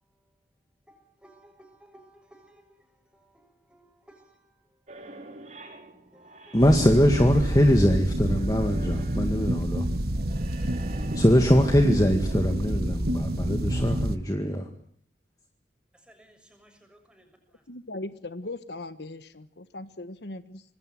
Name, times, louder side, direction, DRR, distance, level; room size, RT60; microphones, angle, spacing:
voice 1, 0.9-4.6 5.5-5.9 6.1-6.6 15.9-17.6, right 1 dB, 5° right, 6.9 m, -58 dB
sound 1, 4.9-12.4, right 2 dB, 40° right, 4.5 m, -45 dB
voice 2, 6.5-9.8 11.1-14.7, equal, 20° left, 2.0 m, -22 dB
sound 2, 6.6-14.2, right 1 dB, 60° right, 1.5 m, -28 dB
voice 3, 17.7-20.6, left 2 dB, 75° left, 1.3 m, -39 dB
26.0 x 20.5 x 7.7 m
head